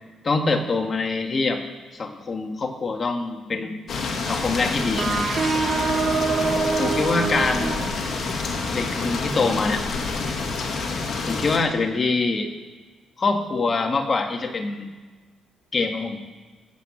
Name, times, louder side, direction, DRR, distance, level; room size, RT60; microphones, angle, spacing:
voice 1, 0.2-1.6 1.9-3.8 4.2-5.3 6.8-7.7 8.7-9.8 11.3-12.5 13.2-14.9 15.7-16.2, left 3 dB, 40° left, 4 dB, 1.8 m, -24 dB
sound 1, 3.9-11.6, left 4 dB, 55° left, 2.2 m, -28 dB
sound 2, 5.0-8.5, right 4 dB, 50° right, 2.1 m, -25 dB
15.5 x 8.4 x 7.3 m, 1.3 s
cardioid pair, 90°, 0 cm